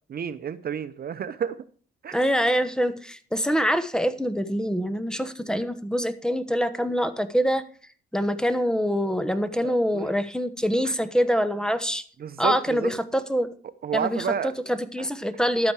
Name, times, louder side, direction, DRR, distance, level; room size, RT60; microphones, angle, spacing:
voice 1, 0.1-1.6 2.0-2.2 9.6-10.1 10.8-10.9 12.2-12.9 13.8-14.5 15.0-15.1, right 7 dB, 50° right, 13 dB, 0.8 m, -30 dB
voice 2, 2.1-7.6 8.1-12.0 12.4-13.5 13.9-15.7, equal, 5° left, 12 dB, 1.2 m, -25 dB
12.0 x 8.6 x 4.8 m, 0.42 s
cardioid pair, 90°, 20 cm